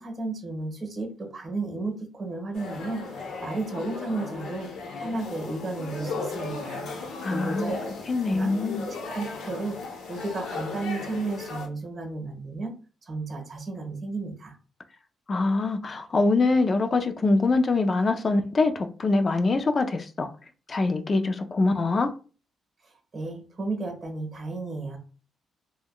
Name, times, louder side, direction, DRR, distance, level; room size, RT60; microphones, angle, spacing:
voice 1, 0.0-3.0 3.4-4.7 5.0-6.9 7.3-7.9 8.2-8.5 8.8-9.8 10.1-12.7 13.1-14.5 23.1-25.0, right 3 dB, 35° right, 1.2 m, -33 dB
sound 1, 2.5-11.7, left 4 dB, 80° left, 0.8 m, -36 dB
voice 2, 7.2-7.7 8.1-8.9 15.3-20.3 20.7-22.1, left 3 dB, 35° left, 0.4 m, -24 dB
3.5 x 2.2 x 2.2 m
cardioid pair, 90°, 0 cm